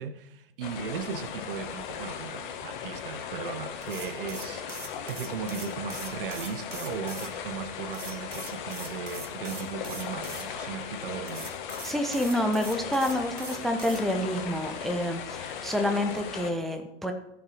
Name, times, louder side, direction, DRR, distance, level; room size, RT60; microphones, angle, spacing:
voice 1, 0.0-11.5, right 7 dB, 50° right, 1.1 m, -37 dB
sound 1, 0.6-16.5, left 7 dB, 45° left, 1.8 m, -38 dB
sound 2, 3.8-7.3 7.9-10.5 11.3-14.0, right 3 dB, 85° right, 1.6 m, -42 dB
voice 2, 11.8-17.1, left 1 dB, ahead, 0.5 m, -28 dB
15.0 x 6.0 x 6.3 m
figure-of-eight pair, 110°, 36 cm